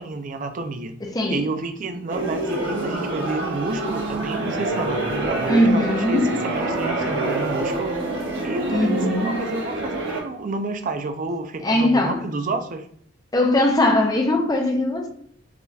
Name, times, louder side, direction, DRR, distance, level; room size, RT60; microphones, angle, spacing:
voice 1, 0.0-0.9 1.3-7.9 8.4-12.9, right 3 dB, 45° right, 0.4 m, -30 dB
voice 2, 1.0-1.5 5.4-6.3 8.7-9.5 11.6-12.2 13.3-15.1, left 1 dB, 20° left, 0.5 m, -20 dB
sound 1, 2.1-10.2, right 2 dB, 75° right, 1.0 m, -26 dB
4.8 x 2.7 x 2.3 m
head